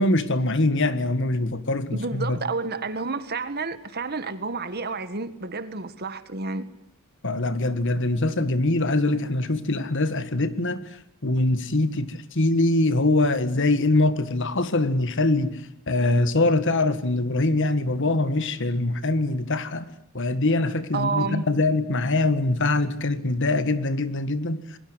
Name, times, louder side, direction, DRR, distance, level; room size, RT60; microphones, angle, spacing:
voice 1, 0.0-2.4 7.2-10.8 11.2-15.6 15.9-19.8 20.1-24.6, left 2 dB, 55° left, 1.8 m, -23 dB
voice 2, 1.9-6.6 20.9-21.5, right 4 dB, 45° right, 1.8 m, -30 dB
27.5 x 21.5 x 8.1 m
head